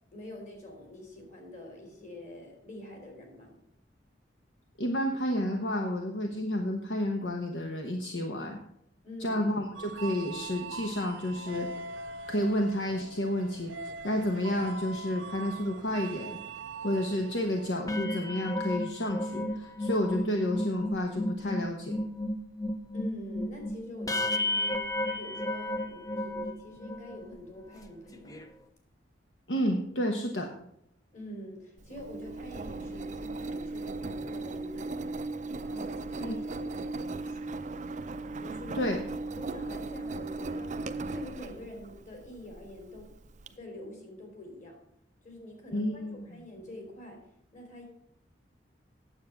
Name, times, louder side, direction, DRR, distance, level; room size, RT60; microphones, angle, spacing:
voice 1, 0.1-3.5 9.0-9.4 22.9-28.5 31.1-35.2 35.6-37.5 38.4-38.9 39.3-43.1 43.5-44.8 45.2-47.2 47.5-47.8, left 1 dB, 40° left, 2 dB, 3.2 m, -45 dB
voice 2, 4.8-8.6 9.2-11.7 12.3-13.7 14.0-16.4 16.8-22.0 29.5-30.5 36.2-36.4 38.7-39.0 45.7-46.4, left 1 dB, 65° left, 3 dB, 1.1 m, -30 dB
sound 1, 9.7-17.8, right 3 dB, 90° right, 0.5 m, -42 dB
sound 2, 17.8-27.2 27.7-27.9 28.1-28.5, left 1 dB, 20° left, 0.7 m, -33 dB
Engine, 31.8-43.5, right 3 dB, 40° right, 0.5 m, -37 dB
9.4 x 7.7 x 5.9 m, 0.73 s
head